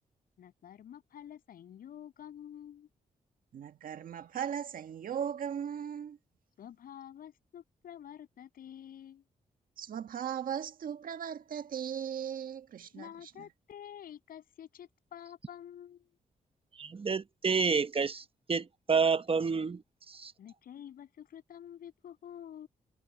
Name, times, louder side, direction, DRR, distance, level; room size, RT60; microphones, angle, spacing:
voice 1, 0.4-2.9 6.6-9.2 12.9-16.1 20.4-22.7, left 10 dB, 85° left, 7.9 m, -49 dB
voice 2, 3.5-6.2 9.8-13.5, right 8 dB, 75° right, 1.6 m, -38 dB
voice 3, 16.8-19.8 20.1-20.3, right 5 dB, 40° right, 1.2 m, -29 dB
cardioid pair, 70°, 15 cm